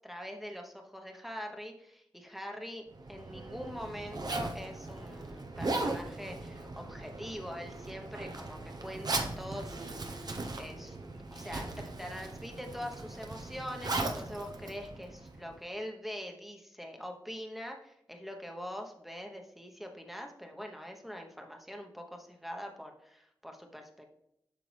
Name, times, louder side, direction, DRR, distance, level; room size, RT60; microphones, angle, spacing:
voice 1, 0.0-11.0 11.3-24.2, equal, 5° right, 2 dB, 1.0 m, -43 dB
Zipper (clothing), 2.9-15.6, right 2 dB, 55° right, 0.9 m, -38 dB
7.9 x 5.8 x 3.4 m, 0.77 s
wide cardioid pair, 80°, 8 cm